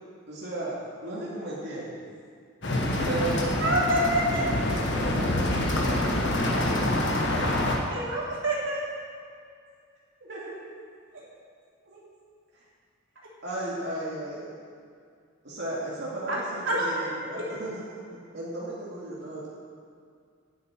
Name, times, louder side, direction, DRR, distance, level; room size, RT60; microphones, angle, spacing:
voice 1, 0.3-2.0 3.0-3.4 4.9-5.2 5.6-6.1 10.2-10.6 11.8-12.1 13.4-14.5 15.4-17.8 18.3-19.5, right 2 dB, 55° right, -7 dB, 2.8 m, -35 dB
sound 1, 2.6-7.8, left 1 dB, 60° left, 1.7 m, -26 dB
voice 2, 3.6-4.4 7.9-8.8 16.3-16.4 16.6-17.1, right 1 dB, 75° right, -5 dB, 3.2 m, -26 dB
9.9 x 8.7 x 9.1 m, 2.2 s
head